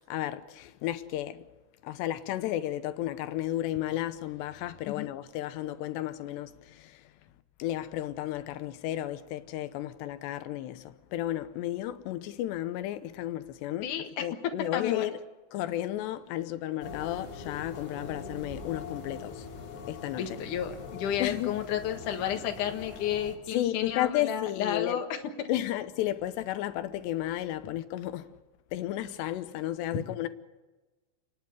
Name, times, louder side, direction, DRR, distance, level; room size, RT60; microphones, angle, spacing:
voice 1, 0.0-1.4 1.8-7.1 7.6-13.9 14.2-15.2 15.5-19.5 19.9-20.4 21.2-21.5 23.5-25.0 25.5-28.3 28.7-30.3, left 13 dB, 75° left, 2.8 m, -33 dB
voice 2, 13.8-14.2 14.7-15.1 20.2-25.1, left 9 dB, 60° left, 2.3 m, -32 dB
sound 1, 16.8-23.4, left 4 dB, 40° left, 2.8 m, -42 dB
29.5 x 11.0 x 9.5 m
omnidirectional pair, 5.5 m